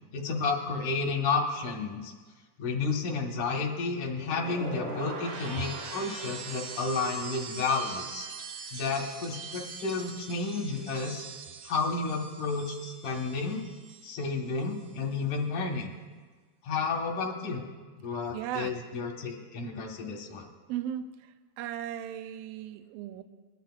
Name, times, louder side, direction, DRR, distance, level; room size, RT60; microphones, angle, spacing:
voice 1, 0.1-2.1 2.6-8.3 8.7-11.3 11.6-13.6 14.0-15.9 16.6-17.6 18.0-20.5, left 4 dB, 80° left, 1 dB, 2.9 m, -31 dB
sound 1, 4.2-14.3 14.6-15.0, right 4 dB, 50° right, 2.0 m, -42 dB
voice 2, 18.3-18.8 20.7-23.2, right 11 dB, 85° right, 8 dB, 1.4 m, -36 dB
20.5 x 11.5 x 2.4 m, 1.4 s
omnidirectional pair, 3.5 m